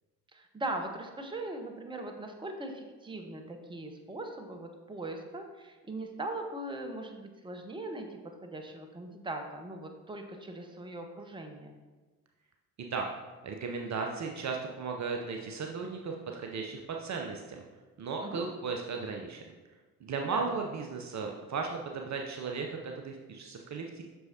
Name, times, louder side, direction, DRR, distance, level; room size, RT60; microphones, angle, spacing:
voice 1, 0.3-11.8 18.2-18.4 20.2-20.6, right 2 dB, 10° right, 4 dB, 0.9 m, -40 dB
voice 2, 13.4-17.6 18.0-19.4 20.0-24.0, right 4 dB, 35° right, 2 dB, 0.7 m, -36 dB
7.8 x 6.2 x 2.8 m, 1.3 s
figure-of-eight pair, 45°, 46 cm